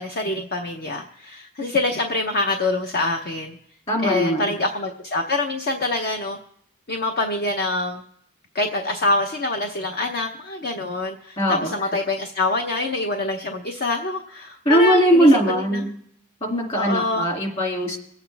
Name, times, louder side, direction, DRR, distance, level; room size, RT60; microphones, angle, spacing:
voice 1, 0.0-3.6 4.0-6.4 6.9-8.0 8.5-15.3 15.7-15.8 16.7-17.2, left 2 dB, 45° left, 4 dB, 0.8 m, -25 dB
voice 2, 3.9-4.5 11.4-11.7 14.6-15.9 16.4-18.0, right 1 dB, 30° left, 0 dB, 2.5 m, -19 dB
24.0 x 8.4 x 3.4 m, 0.69 s
head